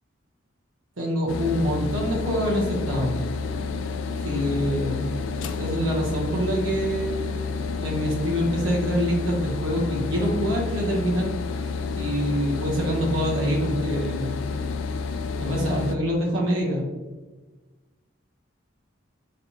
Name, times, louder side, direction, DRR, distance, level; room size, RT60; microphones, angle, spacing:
voice 1, 1.0-3.2 4.2-5.1 5.4-7.3 7.8-11.3 11.9-14.5 15.4-16.9, equal, 85° right, -2 dB, 1.0 m, -25 dB
sound 1, 1.3-16.0, left 4 dB, 75° left, 0.3 m, -30 dB
4.0 x 3.2 x 2.9 m, 1.2 s
head